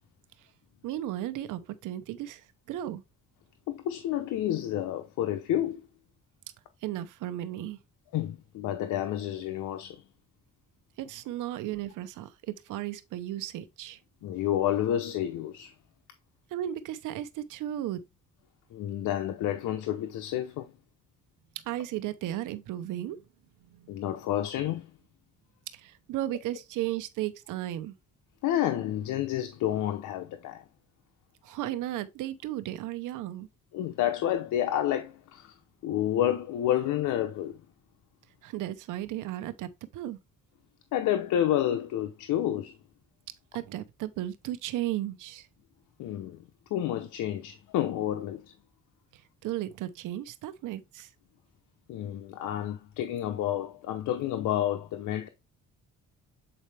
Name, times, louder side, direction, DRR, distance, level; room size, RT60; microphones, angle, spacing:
voice 1, 0.8-3.0 6.8-7.8 11.0-14.0 16.5-18.0 21.6-23.2 23.7-24.0 25.7-28.0 31.4-33.5 38.4-40.2 43.5-45.5 49.1-51.1, right 13 dB, 90° right, 0.9 m, -35 dB
voice 2, 3.7-5.9 8.1-10.0 14.2-15.7 18.7-20.7 23.9-24.9 28.4-30.6 33.7-35.6 35.8-37.6 40.9-42.8 46.0-46.4 46.7-48.5 51.9-55.3, left 11 dB, 85° left, 0.8 m, -30 dB
7.9 x 4.2 x 3.4 m
cardioid pair, 90°, 30 cm